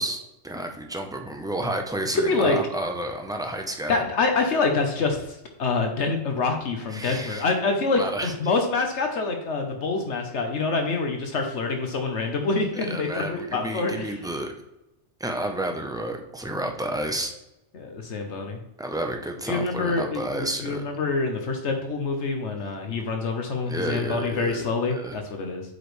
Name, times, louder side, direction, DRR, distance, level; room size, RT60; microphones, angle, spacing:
voice 1, 0.0-4.0 6.9-7.4 8.0-8.3 12.7-14.5 15.2-17.3 18.8-20.8 23.7-24.6 24.9-25.1, right 1 dB, 5° right, 3 dB, 0.6 m, -31 dB
voice 2, 2.1-2.6 3.9-14.1 17.7-18.6 19.5-25.6, left 3 dB, 70° left, 4 dB, 1.2 m, -26 dB
8.2 x 5.0 x 3.2 m, 0.92 s
omnidirectional pair, 1.3 m